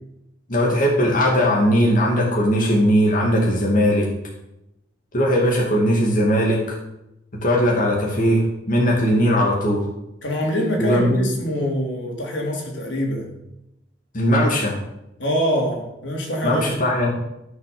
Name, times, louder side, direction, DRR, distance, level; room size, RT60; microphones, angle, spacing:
voice 1, 0.5-4.1 5.1-6.8 7.3-9.8 10.8-11.3 14.1-14.8 16.4-17.1, equal, 45° left, -2 dB, 2.5 m, -19 dB
voice 2, 10.2-13.3 15.2-16.7, equal, 85° left, -1 dB, 3.6 m, -24 dB
14.5 x 6.5 x 6.8 m, 0.87 s
head